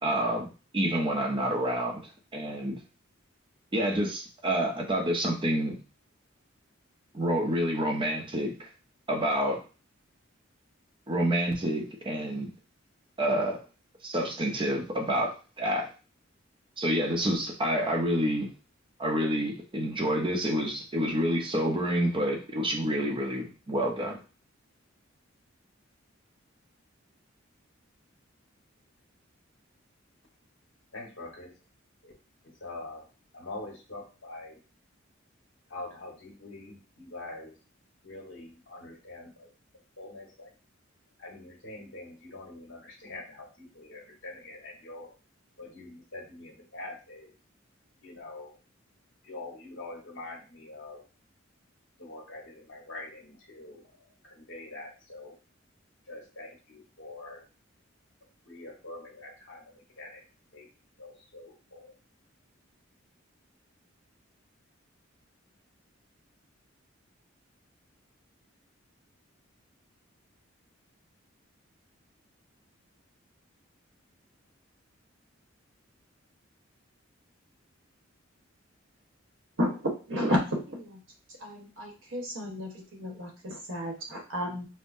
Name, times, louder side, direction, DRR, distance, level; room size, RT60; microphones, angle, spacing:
voice 1, 0.0-2.8 3.7-5.8 7.1-8.7 9.1-9.6 11.1-12.5 13.2-13.6 14.0-15.9 16.8-18.5 19.0-24.2, right 1 dB, 25° right, 2 dB, 0.7 m, -28 dB
voice 2, 30.9-31.5 32.6-33.0 33.3-34.5 35.7-37.5 38.0-38.4 38.7-39.2 40.0-40.3 41.2-43.2 43.9-45.1 45.6-47.2 48.0-48.5 49.3-51.0 52.0-52.4 52.7-53.2 53.5-53.8 54.5-55.3 56.1-56.5 57.0-57.4 58.5-59.6 60.0-60.1 60.6-60.7 61.0-61.1, left 2 dB, 70° left, -1 dB, 1.5 m, -43 dB
voice 3, 79.6-81.0 81.4-84.7, equal, 70° right, 0 dB, 1.2 m, -32 dB
5.3 x 2.1 x 2.6 m, 0.33 s
head